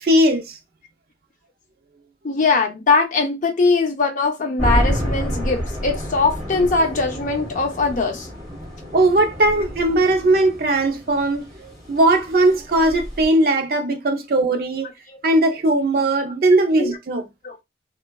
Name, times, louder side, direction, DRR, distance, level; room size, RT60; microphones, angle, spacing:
voice 1, 0.0-0.6 8.9-14.9 15.2-17.3, right 2 dB, 55° right, 0.5 m, -18 dB
voice 2, 2.2-8.3 15.1-15.2 16.8-16.9 17.4-17.6, left 3 dB, 45° left, 0.5 m, -21 dB
sound 1, 4.6-13.3, equal, ahead, 1.5 m, -28 dB
3.0 x 2.2 x 2.2 m
head